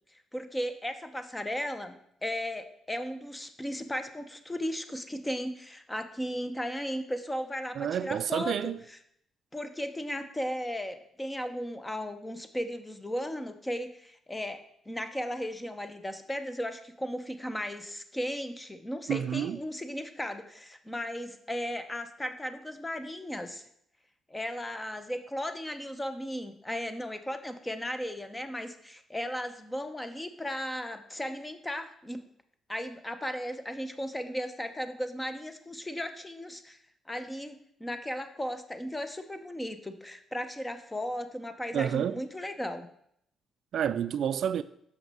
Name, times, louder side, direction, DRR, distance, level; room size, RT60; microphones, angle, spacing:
voice 1, 0.3-9.0 9.5-14.6 14.9-23.7 24.3-32.2 32.7-36.8 37.1-42.9, equal, 10° left, 0.8 m, -36 dB
voice 2, 7.8-8.8 19.1-19.6 41.7-42.2 43.7-44.6, right 9 dB, 65° right, 0.3 m, -29 dB
6.4 x 5.8 x 5.5 m
cardioid pair, 90°, 0 cm